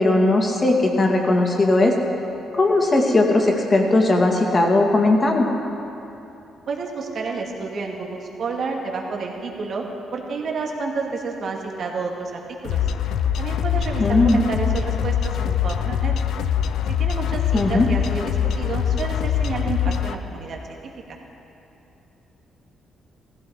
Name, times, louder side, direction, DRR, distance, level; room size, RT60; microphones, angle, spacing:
voice 1, 0.0-1.9 2.6-5.4 14.0-14.4 17.5-17.9, left 2 dB, 30° left, 1 dB, 2.3 m, -18 dB
voice 2, 6.7-9.8 10.1-12.8 13.4-16.1 17.0-21.2, right 4 dB, 55° right, 0 dB, 2.3 m, -30 dB
sound 1, 12.6-20.2, left 8 dB, 80° left, 0.6 m, -23 dB
16.5 x 15.0 x 4.8 m, 2.9 s
cardioid pair, 90°, 0 cm